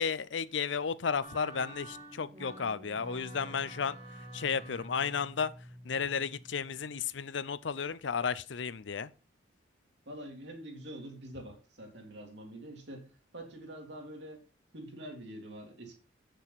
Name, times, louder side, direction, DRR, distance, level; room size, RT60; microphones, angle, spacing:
voice 1, 0.0-5.5 5.8-9.1, left 6 dB, 75° left, 0.6 m, -33 dB
sound 1, 1.2-6.9, right 1 dB, 35° right, 1.7 m, -48 dB
voice 2, 10.1-13.1 13.3-14.4 14.7-16.0, right 1 dB, 65° right, 2.7 m, -45 dB
8.0 x 6.8 x 5.7 m
head